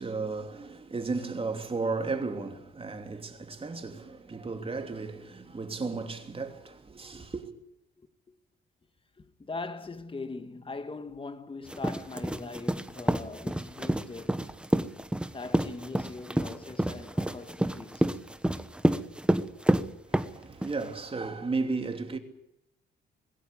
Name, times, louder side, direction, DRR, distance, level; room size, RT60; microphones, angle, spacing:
voice 1, 0.0-7.5 20.1-22.2, right 4 dB, 30° right, 3.1 m, -34 dB
voice 2, 9.2-14.5 15.3-18.2, left 3 dB, 25° left, 2.0 m, -41 dB
sound 1, 11.7-20.8, right 1 dB, 5° right, 1.2 m, -28 dB
20.5 x 16.5 x 9.9 m
cardioid pair, 90°, 20 cm